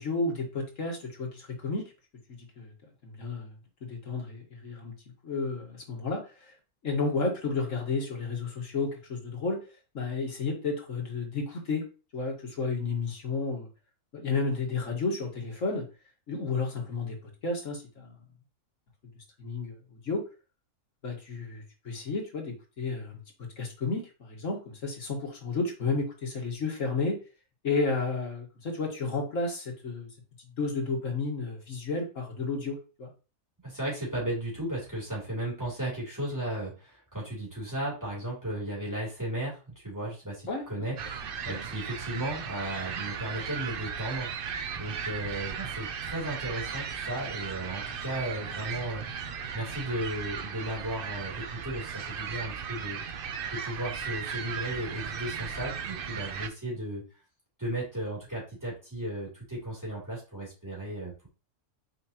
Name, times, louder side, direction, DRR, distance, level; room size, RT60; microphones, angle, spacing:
voice 1, 0.0-1.8 2.3-2.7 3.0-4.9 5.2-6.5 6.8-9.6 9.9-11.9 12.1-13.7 14.1-15.9 16.3-17.2 17.4-18.1 19.4-20.2 21.0-23.2 23.6-27.2 27.6-30.1 30.4-33.1 40.5-40.9 41.5-41.6, left 3 dB, 90° left, 1 dB, 2.1 m, -32 dB
voice 2, 33.6-49.3 49.5-53.0 53.5-57.0 57.6-61.3, right 1 dB, 15° right, -5 dB, 3.3 m, -35 dB
sound 1, 41.0-56.5, right 7 dB, 55° right, 0.7 m, -36 dB
6.3 x 5.0 x 3.0 m, 0.33 s
omnidirectional pair, 1.3 m